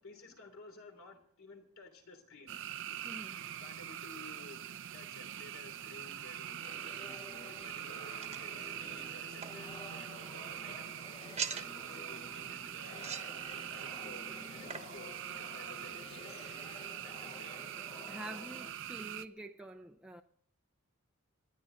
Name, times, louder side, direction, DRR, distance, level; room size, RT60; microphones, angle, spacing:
voice 1, 0.0-2.6 3.6-11.0 11.5-13.2 13.7-16.5 17.0-17.7, left 3 dB, 65° left, 3.1 m, -54 dB
sound 1, 2.5-19.2, right 11 dB, 60° right, 0.6 m, -44 dB
voice 2, 3.0-3.4 18.1-20.2, right 1 dB, 5° right, 0.6 m, -47 dB
sound 2, 6.6-18.7, left 2 dB, 25° left, 0.9 m, -51 dB
sound 3, 6.9-16.7, right 7 dB, 30° right, 1.2 m, -48 dB
27.5 x 10.5 x 3.9 m
head